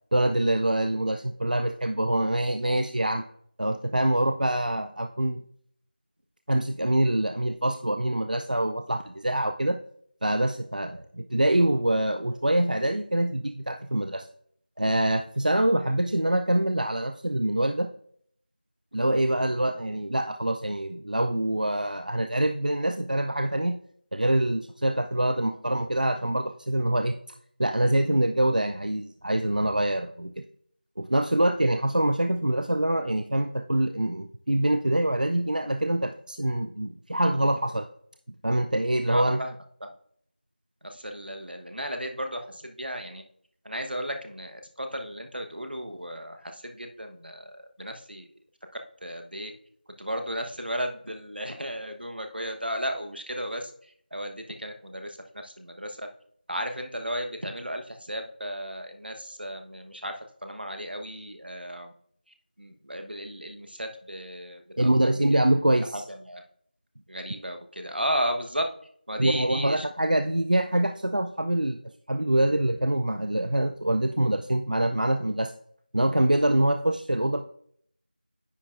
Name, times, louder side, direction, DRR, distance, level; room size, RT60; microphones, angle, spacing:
voice 1, 0.1-3.2 3.6-5.4 6.5-9.8 10.2-14.3 14.8-17.9 18.9-23.8 24.1-27.2 27.6-30.4 31.0-37.9 38.4-39.4 64.8-66.0 69.2-71.8 72.1-75.5 75.9-77.4, right 1 dB, 55° right, 6 dB, 0.4 m, -25 dB
voice 2, 39.1-39.5 39.8-39.9 40.8-43.2 43.6-48.3 49.0-49.5 50.0-53.7 54.1-56.1 56.5-61.9 62.6-65.2 65.9-66.5 67.1-68.7 69.1-69.8, equal, 80° right, 5 dB, 1.1 m, -34 dB
9.7 x 6.0 x 2.5 m, 0.64 s
figure-of-eight pair, 175°, 5 cm